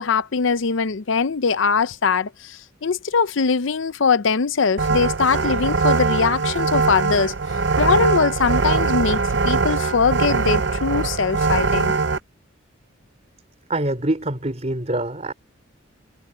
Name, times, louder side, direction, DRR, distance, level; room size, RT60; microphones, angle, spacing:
voice 1, 0.0-7.3 7.8-11.9, left 5 dB, 75° left, 0.6 m, -21 dB
sound 1, 4.8-12.2, right 4 dB, 60° right, 0.7 m, -21 dB
voice 2, 13.7-15.3, right 1 dB, 35° right, 3.9 m, -25 dB
head